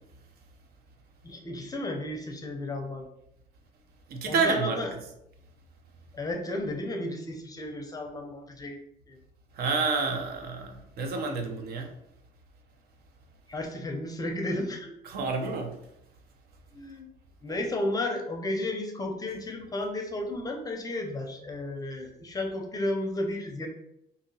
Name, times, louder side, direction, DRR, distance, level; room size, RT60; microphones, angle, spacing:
voice 1, 1.2-3.1 4.3-4.9 6.1-8.8 9.1-9.2 13.5-14.9 16.7-17.1 17.4-23.7, left 1 dB, 20° left, 3 dB, 0.5 m, -33 dB
voice 2, 4.1-4.9 9.6-11.9 15.1-15.7, right 4 dB, 65° right, 4 dB, 0.6 m, -29 dB
2.8 x 2.7 x 2.7 m, 0.81 s
cardioid pair, 110°, 17 cm